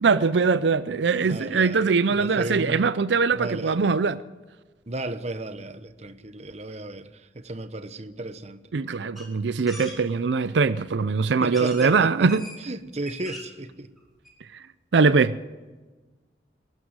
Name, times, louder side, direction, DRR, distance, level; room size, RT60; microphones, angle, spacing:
voice 1, 0.0-4.2 8.7-12.4 14.9-15.4, right 4 dB, 80° right, 0.5 m, -22 dB
voice 2, 1.2-2.9 3.4-3.8 4.9-8.7 11.4-12.3 12.6-13.9, right 2 dB, 40° right, 1.0 m, -34 dB
sound 1, 9.1-9.3 9.7-10.0 10.9-11.0 11.5-11.9 12.3-12.6 12.9-13.6 14.0-14.1 14.2-14.3, equal, ahead, 5.3 m, -40 dB
22.0 x 12.5 x 9.6 m
head